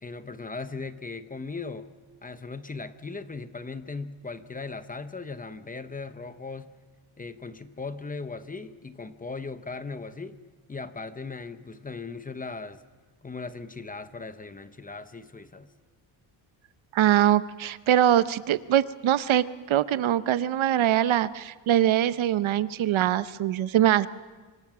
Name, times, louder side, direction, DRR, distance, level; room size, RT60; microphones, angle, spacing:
voice 1, 0.0-1.9 2.2-6.7 7.2-10.4 10.7-12.8 13.2-15.7, left 4 dB, 20° left, 11 dB, 0.7 m, -38 dB
voice 2, 16.9-24.1, right 11 dB, 80° right, 14 dB, 0.9 m, -23 dB
26.0 x 23.0 x 6.1 m, 1.3 s
wide cardioid pair, 170°, 47 cm